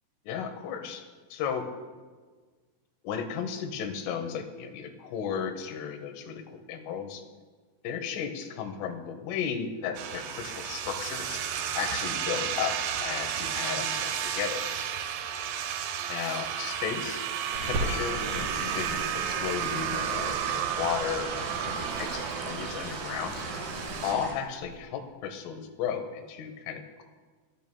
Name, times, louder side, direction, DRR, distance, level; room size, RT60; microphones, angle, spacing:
voice 1, 0.3-1.0 1.3-1.7 3.1-7.2 7.9-11.4 11.8-14.6 16.1-17.3 17.6-23.4 24.0-27.1, left 7 dB, 85° left, 6 dB, 3.5 m, -34 dB
sound 1, 10.0-24.1, right 9 dB, 80° right, 3.0 m, -32 dB
sound 2, 17.5-24.3, right 1 dB, 20° right, 1.6 m, -39 dB
Crackle, 17.5-24.9, right 1 dB, 55° right, 4.3 m, -41 dB
17.0 x 12.5 x 2.2 m, 1.4 s
omnidirectional pair, 5.6 m